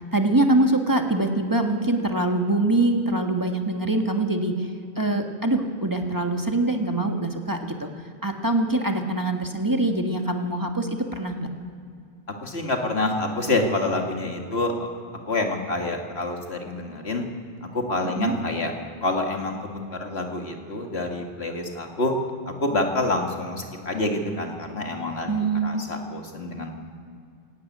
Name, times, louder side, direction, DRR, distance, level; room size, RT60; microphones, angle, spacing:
voice 1, 0.1-4.7 5.0-7.9 8.2-11.5 18.0-18.4 25.3-25.8, right 2 dB, 20° right, 3 dB, 1.5 m, -24 dB
voice 2, 12.4-14.9 15.3-17.3 17.7-18.7 19.0-22.1 22.6-25.3 25.6-26.7, left 2 dB, 75° left, 2 dB, 2.4 m, -27 dB
17.0 x 16.5 x 9.3 m, 2.3 s
omnidirectional pair, 1.1 m